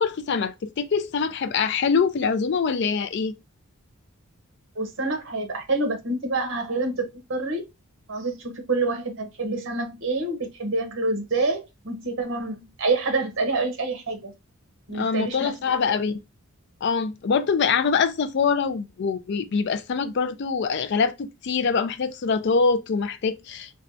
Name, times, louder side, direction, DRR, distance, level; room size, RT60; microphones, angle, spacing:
voice 1, 0.0-3.3 14.9-16.2 16.8-23.8, left 5 dB, 50° left, 0.3 m, -24 dB
voice 2, 4.8-7.6 8.1-14.3 14.9-15.5, right 3 dB, 55° right, 0.9 m, -27 dB
4.2 x 2.3 x 2.6 m
head